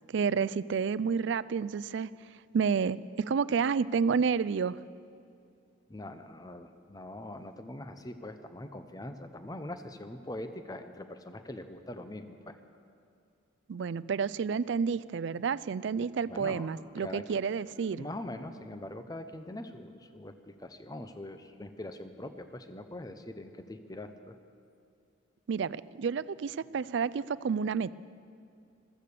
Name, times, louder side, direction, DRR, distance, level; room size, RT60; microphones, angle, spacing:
voice 1, 0.1-2.1 2.5-4.8 13.7-18.1 25.5-27.9, right 6 dB, 65° right, 17 dB, 0.4 m, -30 dB
voice 2, 5.9-12.6 16.3-17.4 17.7-24.4, left 1 dB, 20° left, 9 dB, 0.7 m, -43 dB
15.0 x 14.0 x 6.8 m, 2.5 s
head